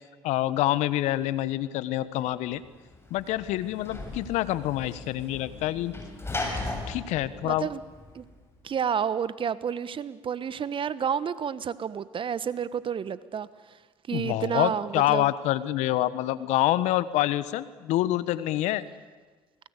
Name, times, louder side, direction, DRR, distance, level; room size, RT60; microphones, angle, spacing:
voice 1, 0.2-2.6 3.1-5.9 6.9-7.7 14.1-18.9, left 15 dB, 70° left, 15 dB, 1.2 m, -26 dB
Sliding door / Slam, 2.6-8.4, left 2 dB, 20° left, 7.3 m, -37 dB
voice 2, 7.4-7.8 8.1-8.2 8.6-13.8 14.1-15.3, right 7 dB, 45° right, 16 dB, 1.3 m, -30 dB
28.0 x 20.5 x 8.3 m, 1.3 s
hypercardioid pair, 65°, 12 cm